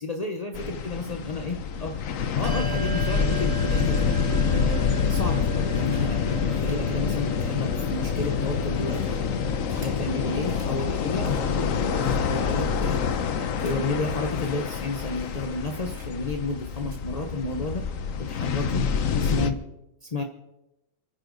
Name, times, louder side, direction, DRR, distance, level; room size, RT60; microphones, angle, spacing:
voice 1, 0.0-2.0 2.3-4.2 4.4-9.3 9.7-13.2 13.6-17.8 18.2-18.8 19.2-19.6 20.0-20.2, left 2 dB, 35° left, 3 dB, 0.6 m, -31 dB
sound 1, 0.5-19.5, left 6 dB, 55° left, 1.0 m, -27 dB
Bell, 2.4-12.4, right 9 dB, 80° right, 2.0 m, -40 dB
sound 2, 5.8-6.3 6.6-10.1 10.5-10.7 11.1-11.7 12.0-12.5 12.8-13.2 13.6-13.8 14.0-14.1 14.4-14.5 14.8-14.9 15.1-15.6 15.9-16.3 16.7-16.8, right 1 dB, 15° right, 2.1 m, -52 dB
28.5 x 9.8 x 4.0 m, 0.91 s
omnidirectional pair, 2.1 m